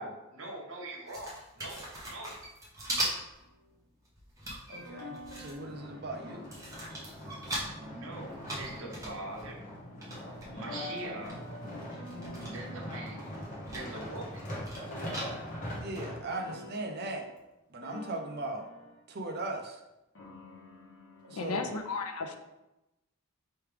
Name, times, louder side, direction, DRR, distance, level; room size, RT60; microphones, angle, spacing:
voice 1, 0.0-2.3 7.8-9.6 10.5-11.4 12.4-13.2 13.6-14.4, right 2 dB, 65° right, 0 dB, 0.9 m, -42 dB
sound 1, 1.1-3.5 3.7-5.9 6.3-7.8 8.2-10.5 11.0-11.1 11.2-12.8 13.1-13.9 14.2-15.6 16.1-16.2, right 1 dB, 15° right, 0.9 m, -39 dB
sound 2, 3.4-3.7 4.7-8.5 8.7-9.5 10.1-15.9 16.3-17.4 17.8-19.0 20.2-21.7, left 1 dB, 60° left, 0.9 m, -49 dB
voice 2, 4.7-6.5 15.7-17.3 17.7-18.7 19.1-19.8 21.3-21.7, right 2 dB, 45° right, 2 dB, 0.6 m, -38 dB
sound 3, 5.6-16.6 17.2-17.3, equal, 35° left, 1.1 m, -42 dB
voice 3, 21.3-22.4, left 4 dB, 80° left, 6 dB, 0.5 m, -34 dB
4.7 x 3.2 x 3.3 m, 0.95 s
head